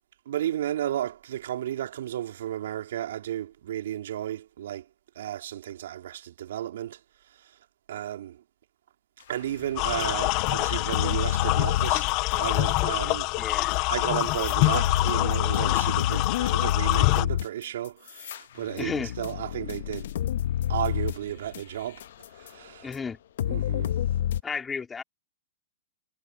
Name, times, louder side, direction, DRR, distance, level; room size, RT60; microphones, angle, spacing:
voice 1, 0.2-4.8 5.1-7.0 7.9-8.4 9.3-12.1 12.3-13.3 13.9-20.1 20.7-22.0 22.4-22.9 23.4-23.9, right 11 dB, 70° right, 3.5 m, -33 dB
sound 1, 9.5-12.8 13.7-13.8 14.2-22.5 22.9-23.0 23.4-24.4, left 11 dB, 65° left, 0.9 m, -29 dB
sound 2, 9.8-17.3, left 25 dB, 40° left, 0.3 m, -26 dB
voice 2, 13.4-13.7 18.8-19.1 22.8-23.2 24.4-25.0, left 5 dB, 15° left, 3.0 m, -33 dB
hypercardioid pair, 135°, 0 cm